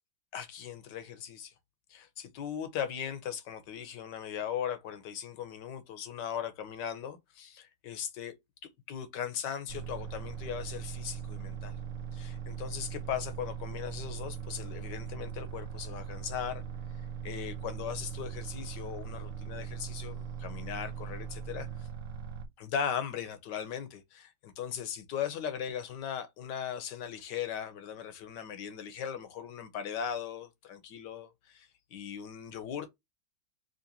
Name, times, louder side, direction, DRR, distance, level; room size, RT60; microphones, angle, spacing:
voice 1, 0.3-1.5 1.9-8.3 8.9-11.7 12.1-16.6 17.2-21.7 22.6-32.9, left 8 dB, 70° left, 1.3 m, -38 dB
sound 1, 9.7-22.5, right 7 dB, 60° right, 0.8 m, -40 dB
3.9 x 2.9 x 2.8 m
omnidirectional pair, 2.1 m